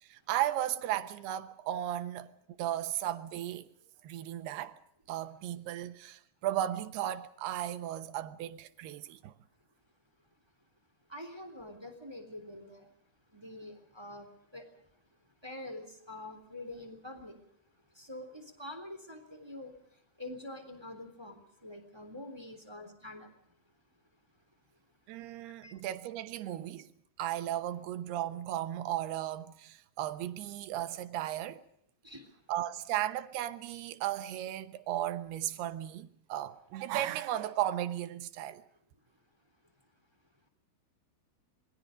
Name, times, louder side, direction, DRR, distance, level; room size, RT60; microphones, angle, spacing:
voice 1, 0.0-2.3 2.6-3.7 4.0-4.8 5.1-9.3 25.1-26.9 27.2-31.6 32.5-38.6, right 12 dB, 85° right, 3.1 m, -35 dB
voice 2, 11.1-12.9 13.3-14.3 14.5-14.6 15.4-17.4 17.9-19.7 20.2-23.3 25.6-25.7 32.0-32.2, left 1 dB, 5° right, 2.6 m, -45 dB
27.5 x 21.5 x 5.1 m
omnidirectional pair, 4.5 m